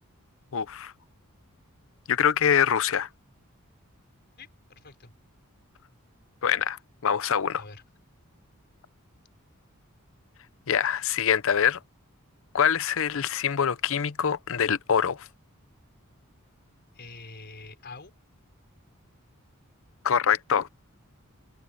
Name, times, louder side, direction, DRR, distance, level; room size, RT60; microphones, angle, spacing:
voice 1, 0.5-0.9 2.1-3.1 6.4-7.6 10.7-11.8 12.5-15.3 20.0-20.7, left 8 dB, 65° left, 0.6 m, -24 dB
voice 2, 4.4-5.1 7.6-7.8 16.9-18.1, left 3 dB, 50° left, 4.7 m, -46 dB
head